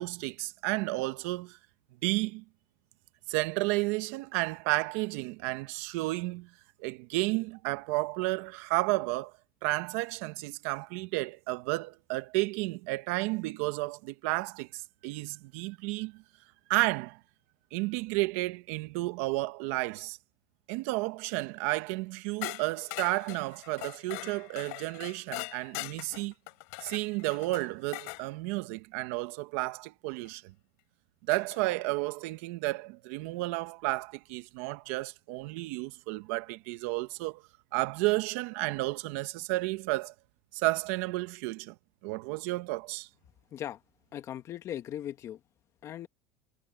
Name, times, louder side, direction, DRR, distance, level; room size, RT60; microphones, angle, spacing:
voice 1, 0.0-1.6 2.0-2.4 3.3-6.5 6.8-9.3 9.6-16.2 16.7-17.2 17.7-20.2 20.7-26.3 26.8-30.5 31.3-37.4 37.7-40.1 40.5-41.7 42.0-43.1, right 21 dB, 75° right, 1.4 m, -32 dB
sound 1, 22.4-28.3 30.2-30.3 31.3-31.8, left 31 dB, 80° left, 5.2 m, -42 dB
voice 2, 44.1-45.4 45.8-46.1, left 11 dB, 40° left, 1.6 m, -38 dB
cardioid pair, 140°, 8 cm